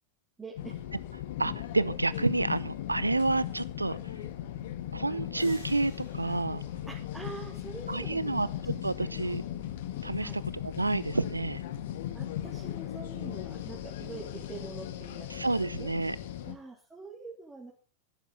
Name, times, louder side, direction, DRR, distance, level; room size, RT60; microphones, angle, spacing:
voice 1, 0.4-0.8 5.1-5.2 6.9-8.7 9.1-9.2 10.2-10.4 12.1-15.5 15.7-15.9 16.4-17.7, right 4 dB, 10° right, -4 dB, 3.2 m, -45 dB
sound 1, 0.6-16.6, left 11 dB, 55° left, 1.5 m, -38 dB
voice 2, 1.4-4.0 4.9-6.6 7.9-8.5 8.8-9.4 10.0-11.6 15.3-16.2, right 2 dB, 85° right, 19 dB, 0.6 m, -29 dB
sound 2, 5.3-8.1, left 2 dB, 80° left, 7.9 m, -55 dB
14.0 x 12.0 x 4.1 m, 0.36 s
figure-of-eight pair, 90°, 0 cm